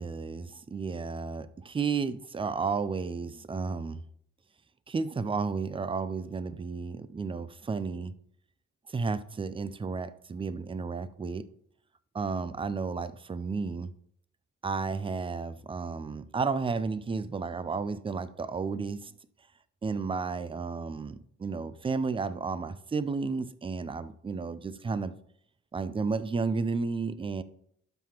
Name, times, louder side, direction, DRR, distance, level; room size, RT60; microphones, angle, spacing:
voice 1, 0.0-4.0 4.9-8.1 8.9-11.5 12.1-13.9 14.6-19.1 19.8-25.1 25.7-27.4, right 4 dB, 20° right, 0.4 m, -32 dB
12.0 x 5.8 x 2.9 m
cardioid pair, 90°, 30 cm